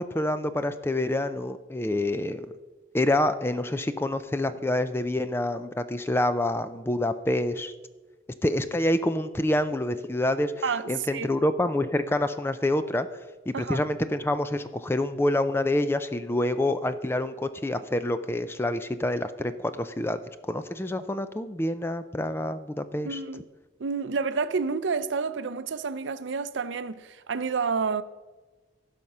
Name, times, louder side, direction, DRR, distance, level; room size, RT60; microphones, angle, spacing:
voice 1, 0.0-2.5 2.9-7.7 8.4-10.5 10.9-13.1 13.5-23.2, left 1 dB, 10° left, 0.4 m, -27 dB
voice 2, 10.6-11.3 13.5-13.8 23.0-23.4 23.8-28.0, right 5 dB, 80° right, 0.5 m, -29 dB
15.5 x 5.8 x 5.5 m
head